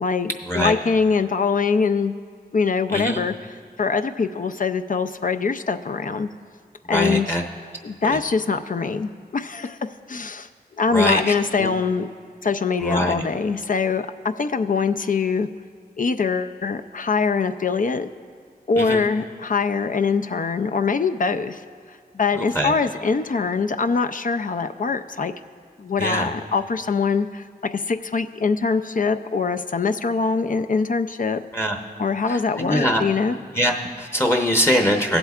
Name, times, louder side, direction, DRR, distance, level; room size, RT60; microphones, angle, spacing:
voice 1, 0.0-2.1 2.5-3.5 3.8-6.3 6.9-7.4 7.8-9.8 10.1-10.5 10.8-12.1 12.4-15.5 16.0-18.1 18.7-21.6 21.9-25.3 25.8-27.4 27.7-31.4 32.0-33.4, left 5 dB, 50° left, 8 dB, 0.4 m, -23 dB
voice 2, 6.9-7.4 8.1-8.2 10.9-11.7 12.8-13.2 18.8-19.0 22.4-22.7 26.0-26.3 31.5-31.8 32.3-33.0 33.5-35.2, equal, 15° left, 2 dB, 0.8 m, -22 dB
18.5 x 7.9 x 2.4 m, 2.1 s
wide cardioid pair, 45°, 17 cm